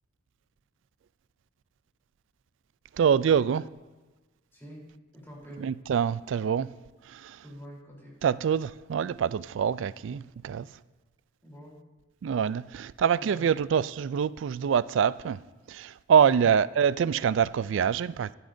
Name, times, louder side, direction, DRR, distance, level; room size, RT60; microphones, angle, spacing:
voice 1, 3.0-3.7 5.6-6.7 7.1-7.4 8.2-10.7 12.2-15.4 15.7-18.3, right 7 dB, 65° right, 0.3 m, -25 dB
voice 2, 4.5-4.8 5.1-5.7 7.4-8.2 11.4-11.8 13.2-13.5 16.3-16.5, equal, 10° left, 3.6 m, -46 dB
15.0 x 13.0 x 2.7 m
head